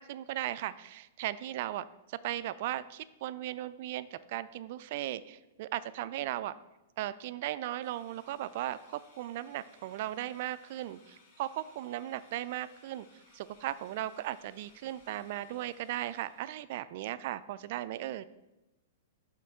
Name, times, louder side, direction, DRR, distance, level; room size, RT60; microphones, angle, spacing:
voice 1, 0.0-6.5 7.0-13.1 13.3-18.2, right 13 dB, 55° right, 15 dB, 0.3 m, -37 dB
sound 1, 7.8-16.6, left 3 dB, 55° left, 1.6 m, -63 dB
6.2 x 3.7 x 5.5 m, 1.0 s
hypercardioid pair, 115°, 0 cm